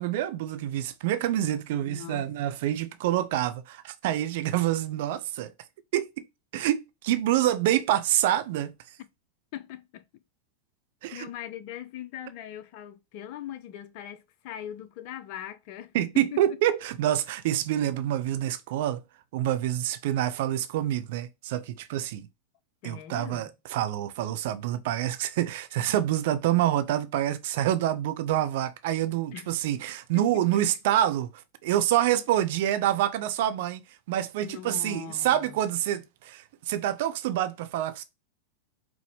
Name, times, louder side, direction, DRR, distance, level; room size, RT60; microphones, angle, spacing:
voice 1, 0.0-5.5 5.9-6.1 6.5-8.8 11.0-11.3 15.9-19.0 19.3-22.3 22.8-31.3 31.6-33.8 34.1-38.0, right 12 dB, 50° right, 0.4 m, -27 dB
voice 2, 1.7-2.3 9.5-10.0 11.1-16.4 22.8-23.5 29.3-29.5 30.5-30.6 34.4-35.6, left 11 dB, 45° left, 0.4 m, -40 dB
4.7 x 2.0 x 3.1 m
figure-of-eight pair, 90°, 0 cm